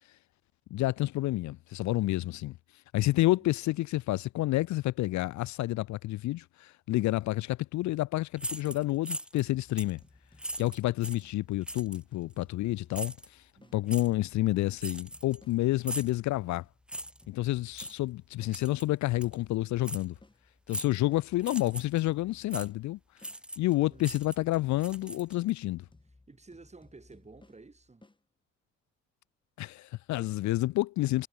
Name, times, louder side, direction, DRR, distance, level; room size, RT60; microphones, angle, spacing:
voice 1, 0.7-2.6 2.9-10.0 10.6-13.4 13.7-16.6 17.3-20.2 20.7-23.0 23.6-25.8 29.6-31.3, left 17 dB, 70° left, 0.4 m, -29 dB
voice 2, 3.0-3.5 13.6-14.3 20.9-21.2 23.8-24.2 26.3-28.1, right 3 dB, 20° right, 5.4 m, -54 dB
sound 1, 8.4-9.5 9.8-10.0 10.4-11.3 11.7-12.0 12.9-13.3 13.9-14.1 14.8-15.5 15.8-16.2 16.9-17.2 17.8-18.0 18.5-18.9 19.2-19.4 19.8-20.1 20.7-21.0 21.4-22.0 22.5-22.7 23.2-23.7 24.0-25.5, equal, 5° right, 2.4 m, -39 dB
sound 2, 9.4-13.8 14.2-18.6 19.0-23.4 23.8-28.2, left 2 dB, 15° left, 6.5 m, -60 dB
cardioid pair, 90°, 30 cm